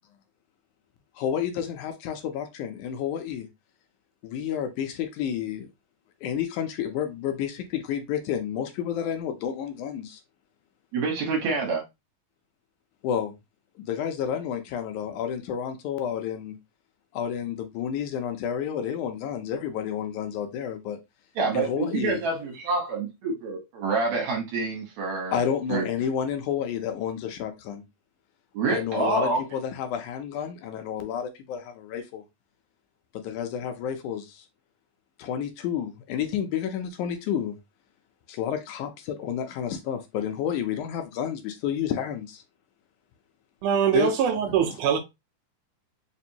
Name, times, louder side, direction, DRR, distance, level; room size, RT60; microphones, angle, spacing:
voice 1, 1.2-3.5 4.2-5.7 6.2-10.2 13.0-13.3 13.8-16.6 17.1-21.0 21.5-22.2 25.3-27.8 28.7-32.2 33.1-34.5 35.2-37.6 38.3-42.4 43.9-44.1 44.6-44.7, left 8 dB, 80° left, 1.9 m, -30 dB
voice 2, 10.9-11.8 21.4-25.4 25.7-25.9 28.5-29.4, right 3 dB, 65° right, 2.3 m, -27 dB
voice 3, 43.6-45.0, right 8 dB, 80° right, 2.0 m, -23 dB
5.2 x 2.5 x 2.7 m
omnidirectional pair, 3.7 m